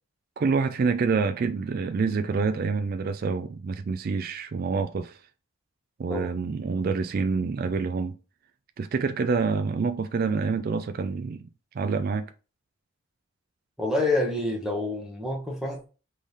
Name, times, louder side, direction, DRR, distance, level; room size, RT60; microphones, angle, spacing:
voice 1, 0.4-5.2 6.0-8.1 8.8-11.5 11.7-12.3, right 4 dB, 45° right, 0.3 m, -27 dB
voice 2, 13.8-15.9, left 2 dB, 5° right, 1.0 m, -27 dB
3.7 x 3.2 x 4.0 m
head